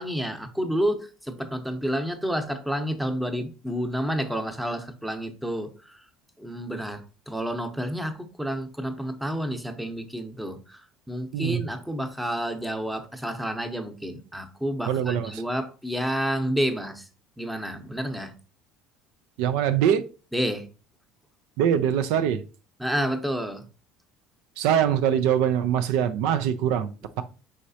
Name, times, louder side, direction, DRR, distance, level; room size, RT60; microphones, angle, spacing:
voice 1, 0.0-6.0 6.4-10.8 11.1-17.1 17.4-18.3 20.3-20.7 22.8-23.6, equal, 5° right, 0.8 m, -30 dB
voice 2, 11.3-11.7 14.9-15.4 19.4-20.1 21.6-22.4 24.6-27.2, right 9 dB, 80° right, 0.4 m, -23 dB
4.9 x 3.1 x 2.7 m
supercardioid pair, 95°, 0 cm